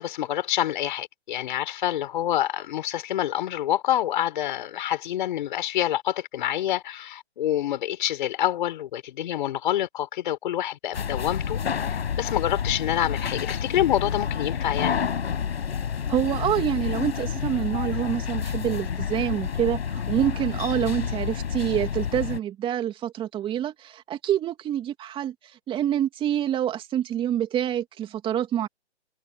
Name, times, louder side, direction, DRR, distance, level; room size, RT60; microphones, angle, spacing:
voice 1, 0.0-15.0, left 12 dB, 45° left, 5.1 m, -27 dB
sound 1, 10.9-22.4, left 7 dB, 65° left, 5.8 m, -29 dB
voice 2, 16.1-25.3 25.7-28.7, right 11 dB, 15° right, 3.1 m, -26 dB
hypercardioid pair, 145°, 34 cm